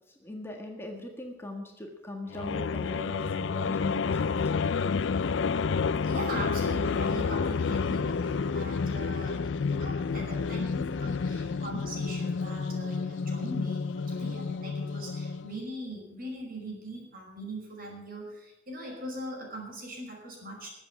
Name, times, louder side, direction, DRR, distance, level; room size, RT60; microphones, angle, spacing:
voice 1, 0.2-4.9, left 1 dB, 15° left, 1 dB, 1.6 m, -40 dB
sound 1, 2.3-15.6, left 5 dB, 70° left, 0.4 m, -30 dB
voice 2, 6.0-20.7, right 1 dB, 50° right, 0 dB, 5.5 m, -40 dB
20.0 x 8.1 x 7.1 m, 0.92 s
head